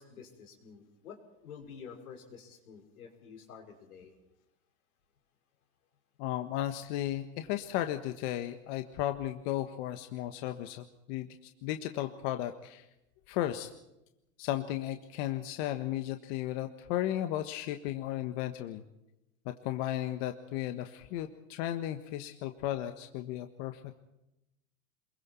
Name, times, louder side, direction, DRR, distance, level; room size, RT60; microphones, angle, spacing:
voice 1, 0.0-4.1, left 6 dB, 85° left, 2 dB, 5.7 m, -50 dB
voice 2, 6.2-11.3 11.6-12.8 13.3-13.7 14.4-18.8 19.4-24.0, left 13 dB, 50° left, 7 dB, 1.5 m, -35 dB
27.5 x 22.5 x 4.6 m, 0.90 s
supercardioid pair, 135°, 42 cm